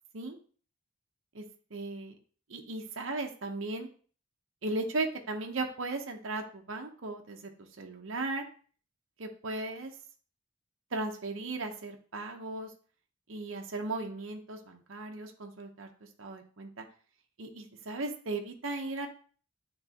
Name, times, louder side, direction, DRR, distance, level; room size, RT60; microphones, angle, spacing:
voice 1, 1.7-2.1 2.5-3.9 4.6-8.5 9.2-9.9 10.9-12.7 13.3-15.9 16.2-16.9 17.4-19.1, right 2 dB, 75° right, 3 dB, 0.8 m, -36 dB
9.0 x 3.8 x 2.9 m, 0.42 s
head